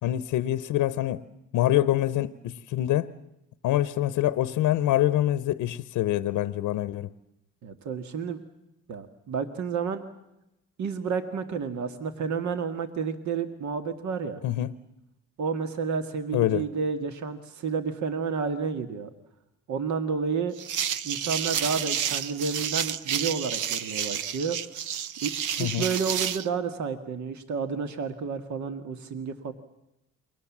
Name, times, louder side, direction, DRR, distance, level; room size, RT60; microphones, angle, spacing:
voice 1, 0.0-1.2 1.5-3.1 3.6-7.1 14.4-14.7 16.3-16.6 25.6-25.9, left 13 dB, 85° left, 0.9 m, -25 dB
voice 2, 7.6-8.4 8.9-10.0 10.8-14.4 15.4-19.1 19.7-20.5 21.0-24.6 25.2-25.3 25.6-29.5, right 5 dB, 70° right, 1.9 m, -30 dB
sound 1, 20.6-26.5, right 9 dB, 90° right, 1.0 m, -30 dB
29.0 x 23.0 x 7.3 m
cardioid pair, 90°, 30 cm